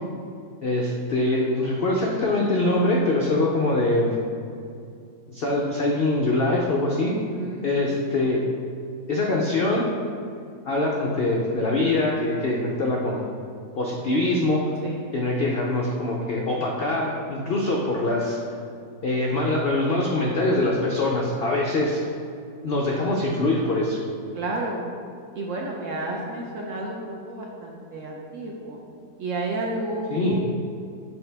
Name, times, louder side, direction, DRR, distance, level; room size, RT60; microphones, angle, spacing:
voice 1, 0.6-4.2 5.3-7.1 7.6-8.4 9.1-9.9 10.7-13.2 13.8-14.6 15.1-18.4 19.0-22.0 22.6-24.0 30.1-30.4, left 2 dB, 80° left, -2 dB, 0.5 m, -23 dB
voice 2, 7.3-7.7 14.8-15.1 24.3-24.9 25.3-28.8 29.2-30.4, right 2 dB, 65° right, -1 dB, 0.8 m, -31 dB
7.2 x 3.9 x 3.3 m, 2.4 s
omnidirectional pair, 1.8 m